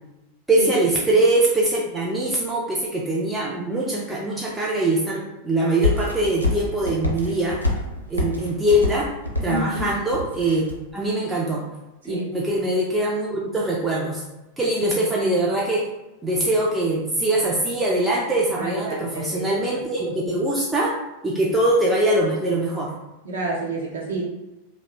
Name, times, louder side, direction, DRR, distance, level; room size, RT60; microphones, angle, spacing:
voice 1, 0.5-7.6 8.1-9.1 9.4-10.7 10.9-11.6 12.0-14.2 14.6-15.8 16.2-20.9 21.2-22.9, right 1 dB, 10° right, -5 dB, 0.4 m, -22 dB
sound 1, 5.8-10.8, left 2 dB, 85° left, 0.5 m, -26 dB
voice 2, 9.5-9.8 12.0-12.3 18.6-19.4 23.2-24.2, right 2 dB, 65° right, -5 dB, 0.8 m, -29 dB
2.5 x 2.0 x 2.9 m, 1.0 s
figure-of-eight pair, 90°, 0 cm